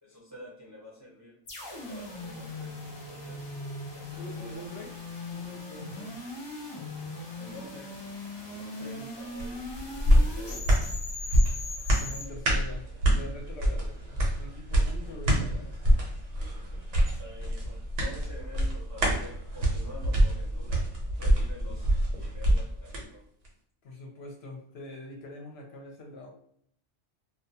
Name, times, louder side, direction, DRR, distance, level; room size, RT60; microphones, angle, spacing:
voice 1, 0.0-3.4 3.9-4.6 7.4-7.9 8.4-9.6 10.1-10.7 17.0-20.9 21.2-23.2, left 1 dB, 20° right, -5 dB, 0.5 m, -48 dB
sound 1, 1.5-12.2, left 2 dB, 40° left, 0.4 m, -40 dB
voice 2, 4.2-4.9 5.3-6.2 8.7-9.1 11.9-15.7 23.8-26.3, left 1 dB, 70° left, 1 dB, 0.8 m, -44 dB
sound 2, 9.4-23.0 23.4-23.5, right 1 dB, 80° right, 1.1 m, -26 dB
2.3 x 2.2 x 2.6 m, 0.66 s
omnidirectional pair, 1.2 m